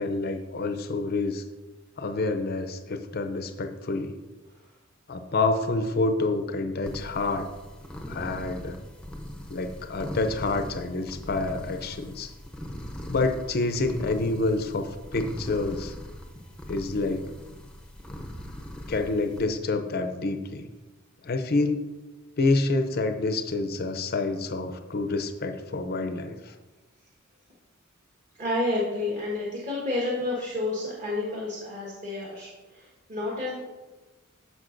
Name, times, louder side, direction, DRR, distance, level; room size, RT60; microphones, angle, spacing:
voice 1, 0.0-1.4 2.0-4.2 5.1-7.5 8.1-8.8 9.5-12.3 13.1-15.9 16.7-17.2 18.9-20.7 21.2-21.8 22.4-26.5, left 3 dB, 45° left, 8 dB, 0.6 m, -28 dB
sound 1, 6.8-19.5, equal, 5° left, 0.7 m, -40 dB
voice 2, 28.4-33.7, left 2 dB, 35° right, -4 dB, 1.4 m, -30 dB
14.0 x 5.1 x 2.6 m, 1.2 s
head